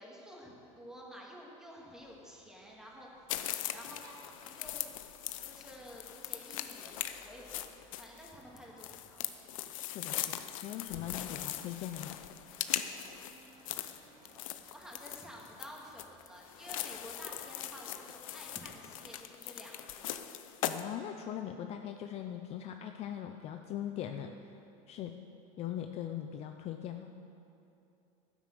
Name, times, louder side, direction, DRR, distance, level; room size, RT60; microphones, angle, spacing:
voice 1, 0.0-3.3 3.7-4.9 5.4-9.2 13.2-13.9 14.7-20.2, equal, 5° right, -3 dB, 2.3 m, -51 dB
sound 1, 2.0-19.2, right 2 dB, 30° right, 2.0 m, -64 dB
sound 2, 3.3-20.8, left 12 dB, 90° left, 0.7 m, -40 dB
voice 2, 9.9-12.2 20.6-24.6 24.9-25.2 25.6-27.1, left 10 dB, 40° left, 6 dB, 0.6 m, -40 dB
12.0 x 9.9 x 6.8 m, 2.8 s
supercardioid pair, 135°, 17 cm